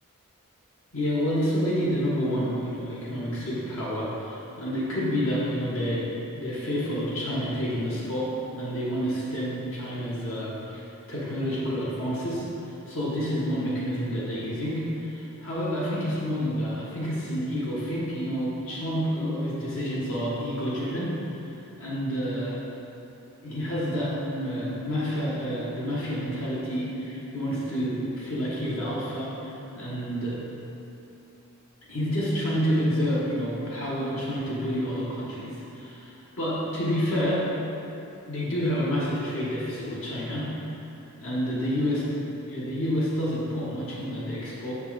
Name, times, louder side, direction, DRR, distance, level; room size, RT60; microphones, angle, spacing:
voice 1, 0.9-12.5 12.9-21.2 21.8-22.6 23.4-30.4 31.9-36.1 36.4-37.5 38.3-40.6 41.2-42.0 42.4-44.9, equal, 60° left, -7 dB, 1.3 m, -29 dB
5.8 x 5.6 x 4.0 m, 3.0 s
head